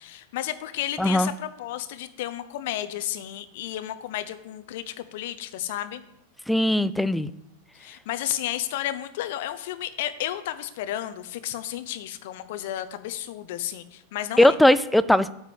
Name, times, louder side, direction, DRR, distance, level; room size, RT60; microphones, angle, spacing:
voice 1, 0.0-6.0 7.7-14.6, left 13 dB, 50° left, 11 dB, 0.8 m, -32 dB
voice 2, 1.0-1.3 6.5-7.3 14.4-15.3, left 1 dB, 5° left, 16 dB, 0.4 m, -19 dB
9.0 x 4.9 x 7.6 m, 0.83 s
figure-of-eight pair, 90°, 0 cm